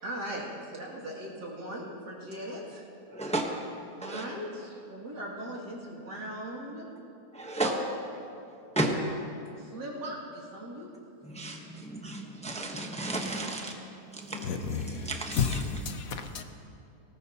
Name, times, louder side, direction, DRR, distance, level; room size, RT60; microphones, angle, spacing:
voice 1, 0.0-2.8 4.0-6.9 7.6-7.7 9.6-10.9, right 1 dB, 85° right, 3.2 m, -39 dB
voice 2, 3.1-3.7 4.0-4.2 7.3-7.7 8.7-9.3 11.2-13.7 14.1-15.8, right 1 dB, 5° left, 0.8 m, -33 dB
voice 3, 14.3-15.1 15.4-15.6 15.9-16.4, left 6 dB, 65° left, 1.2 m, -31 dB
19.0 x 18.5 x 2.9 m
omnidirectional pair, 1.7 m